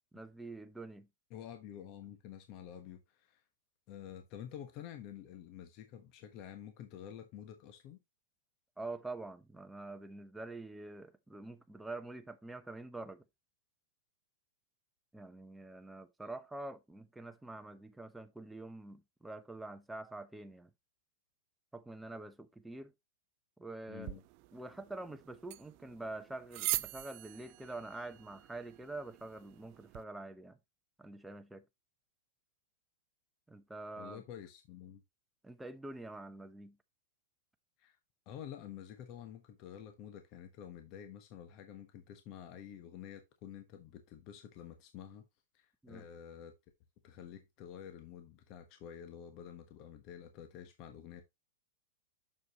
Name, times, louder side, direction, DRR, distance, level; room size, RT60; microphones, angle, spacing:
voice 1, 0.1-1.1 8.8-13.2 15.1-20.7 21.7-22.9 23.6-24.2 24.5-30.6 31.0-31.6 33.5-34.2 35.4-36.8 45.8-46.0, right 2 dB, 5° right, 0.8 m, -46 dB
voice 2, 1.3-3.4 3.9-8.0 23.9-24.2 34.0-35.0 37.8-38.0 38.3-45.2 45.5-46.5 47.0-51.2, left 9 dB, 40° left, 1.1 m, -49 dB
sound 1, 24.0-30.0, right 20 dB, 45° right, 0.4 m, -43 dB
6.8 x 6.7 x 2.9 m
hypercardioid pair, 130°, 0 cm